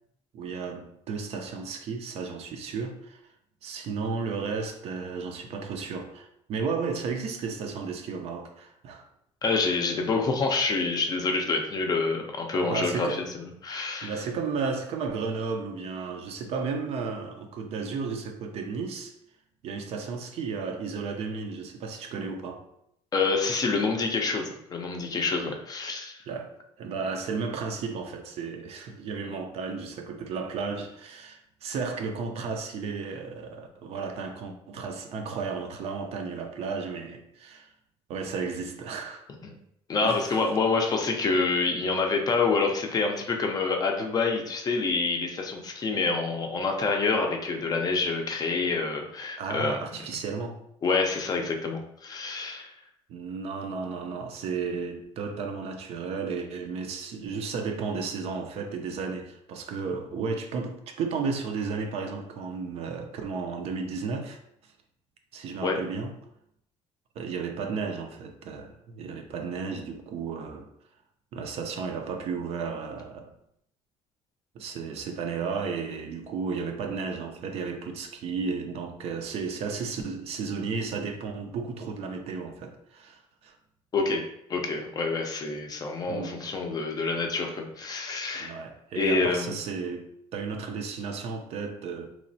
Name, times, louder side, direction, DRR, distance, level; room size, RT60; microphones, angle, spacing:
voice 1, 0.3-3.2 3.6-9.0 12.5-13.2 14.0-19.1 19.6-22.6 26.3-37.7 38.1-39.3 40.0-40.4 49.4-50.6 53.1-64.7 65.3-66.1 67.2-70.7 71.3-73.3 74.5-83.6 86.1-86.4 88.3-92.1, right 5 dB, 60° right, 0.4 m, -33 dB
voice 2, 9.4-13.1 13.3-14.2 23.1-26.2 39.4-39.5 39.9-49.8 50.8-52.7 65.6-65.8 83.9-84.2 84.5-88.5 89.0-89.6, left 4 dB, 35° left, 0.4 m, -27 dB
3.0 x 2.0 x 2.6 m
cardioid pair, 115°, 12 cm